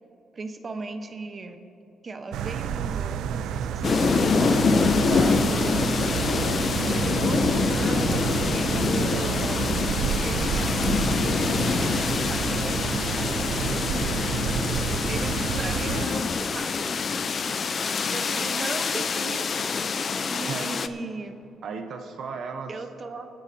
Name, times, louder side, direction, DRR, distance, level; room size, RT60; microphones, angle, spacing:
voice 1, 0.3-1.6 2.0-5.2 6.9-7.4 7.7-9.6 10.0-13.2 13.9-14.0 15.1-17.0 18.1-19.7 20.3-21.4 22.7-23.3, right 3 dB, 40° right, 7 dB, 1.0 m, -37 dB
sound 1, 2.3-16.1, right 8 dB, 85° right, 0.4 m, -29 dB
sound 2, 3.8-20.9, left 5 dB, 45° left, 0.5 m, -25 dB
sound 3, 4.4-15.2, equal, 5° left, 3.4 m, -39 dB
voice 2, 5.1-5.9 7.9-8.5 14.1-14.3 20.5-20.7 21.6-22.7, right 5 dB, 60° right, 5 dB, 0.9 m, -36 dB
25.0 x 9.8 x 2.8 m, 2.9 s
cardioid pair, 90°, 0 cm